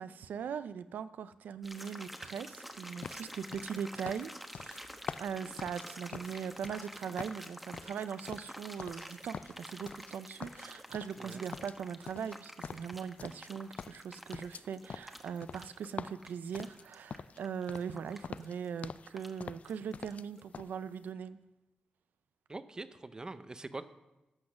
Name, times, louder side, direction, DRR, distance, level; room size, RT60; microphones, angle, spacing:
voice 1, 0.0-4.8 5.2-21.4, right 7 dB, 90° right, 13 dB, 0.5 m, -40 dB
sound 1, 1.6-20.1 20.4-20.5, equal, 5° right, 1.0 m, -49 dB
sound 2, 3.0-6.9 7.2-9.1 9.3-10.1 10.4-11.3 11.5-13.5 13.8-17.4 17.7-18.0 18.2-19.1 19.4-20.3 20.5-20.7, left 6 dB, 55° left, 0.3 m, -45 dB
voice 2, 22.5-23.8, right 2 dB, 25° right, 12 dB, 0.7 m, -43 dB
14.0 x 6.3 x 6.2 m, 1.0 s
cardioid pair, 90°, 3 cm